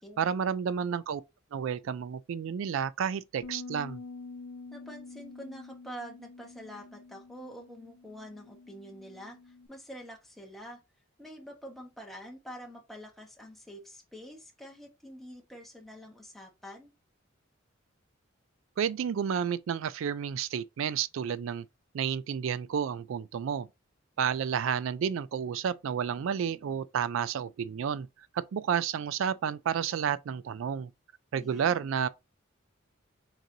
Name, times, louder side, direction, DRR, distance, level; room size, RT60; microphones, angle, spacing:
voice 1, 0.2-1.2 1.5-4.0 18.8-21.6 21.9-23.7 24.2-28.1 28.3-30.9 31.3-32.1, right 7 dB, 65° right, 0.3 m, -31 dB
Bass guitar, 3.4-9.7, left 3 dB, 85° left, 0.6 m, -47 dB
voice 2, 4.7-10.8 11.2-16.9 31.3-31.9, equal, ahead, 1.1 m, -46 dB
6.4 x 3.1 x 2.7 m
head